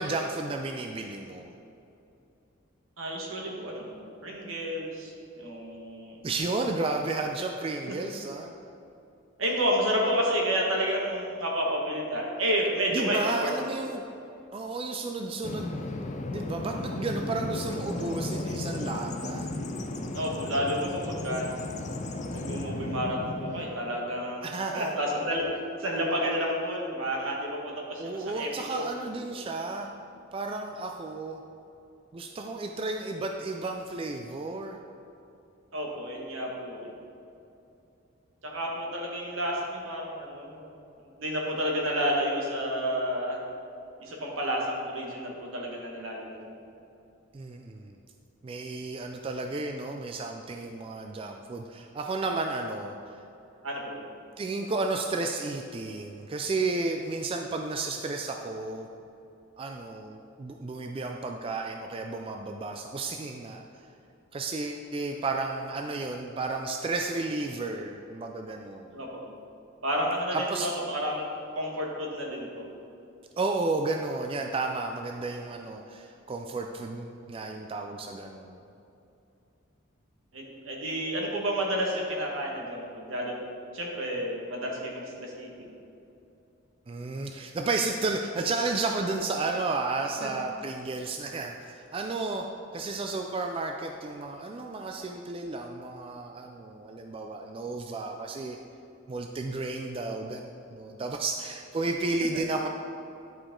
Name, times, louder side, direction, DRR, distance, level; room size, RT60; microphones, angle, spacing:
voice 1, 0.0-1.5 6.2-8.5 12.9-14.0 14.5-15.9 16.3-19.5 24.4-25.0 28.0-29.9 30.3-31.4 32.1-34.8 47.3-47.9 48.4-52.9 54.4-58.9 59.6-63.6 64.3-69.0 70.3-70.7 73.4-78.6 86.9-98.6 99.1-102.7, right 3 dB, 25° right, 3 dB, 0.3 m, -32 dB
voice 2, 3.0-6.3 7.9-8.0 9.4-13.5 20.1-21.5 22.3-25.4 25.8-28.8 35.7-36.9 38.4-40.9 41.2-43.4 44.0-46.4 53.6-54.0 68.9-69.3 69.8-72.7 80.3-83.4 83.7-85.8 90.2-90.3, equal, 80° right, -1 dB, 1.5 m, -30 dB
Bird vocalization bird call bird song, 15.4-23.8, left 2 dB, 35° left, 0.5 m, -35 dB
10.5 x 4.9 x 3.7 m, 2.8 s
head